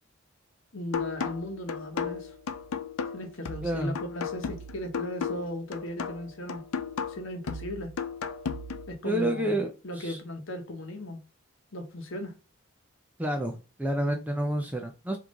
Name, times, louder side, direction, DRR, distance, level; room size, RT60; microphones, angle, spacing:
voice 1, 0.7-2.3 3.1-6.6 7.1-7.9 8.9-11.2 11.7-12.3, left 1 dB, 65° left, 1.0 m, -37 dB
sound 1, 0.9-8.9, left 6 dB, 90° left, 0.5 m, -35 dB
voice 2, 3.6-4.0 9.0-10.2 13.2-15.2, right 1 dB, 5° right, 0.4 m, -29 dB
3.6 x 3.1 x 3.7 m
head